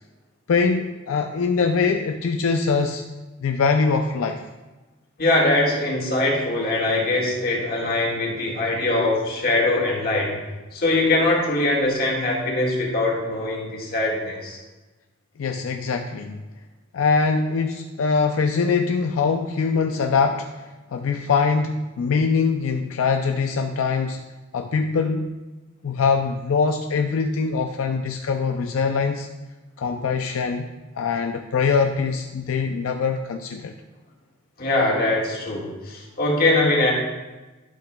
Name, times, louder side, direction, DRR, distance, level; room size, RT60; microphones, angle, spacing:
voice 1, 0.5-3.0 3.4-4.4 15.4-16.4 16.9-24.2 24.5-25.4 25.8-29.3 29.8-30.7 31.0-33.7, left 5 dB, 85° left, 4 dB, 0.4 m, -23 dB
voice 2, 5.2-10.3 10.7-14.6 34.6-36.9, left 2 dB, 50° left, -3 dB, 1.8 m, -22 dB
11.5 x 5.8 x 2.2 m, 1.1 s
head